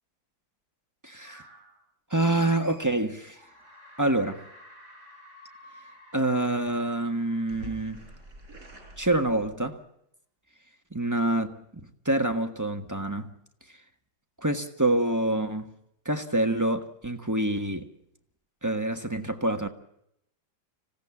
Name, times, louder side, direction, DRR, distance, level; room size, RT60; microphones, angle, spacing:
voice 1, 1.0-1.4 2.1-3.4 4.0-4.4 6.1-8.0 9.0-9.8 10.9-13.3 14.4-15.7 16.0-17.8 18.6-19.7, right 1 dB, 10° right, 1.1 m, -26 dB
sound 1, 1.2-1.8 2.4-3.0 3.3-9.8, right 1 dB, 40° right, 6.6 m, -49 dB
26.0 x 17.0 x 7.2 m
omnidirectional pair, 2.2 m